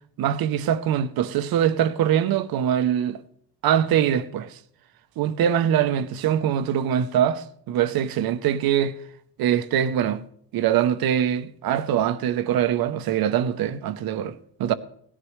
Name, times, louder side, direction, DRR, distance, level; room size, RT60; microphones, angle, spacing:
voice 1, 0.2-3.2 3.6-4.6 5.2-8.9 9.4-10.2 10.5-14.7, right 10 dB, 60° right, 0.9 m, -23 dB
17.0 x 11.0 x 3.2 m
cardioid pair, 125°, 40 cm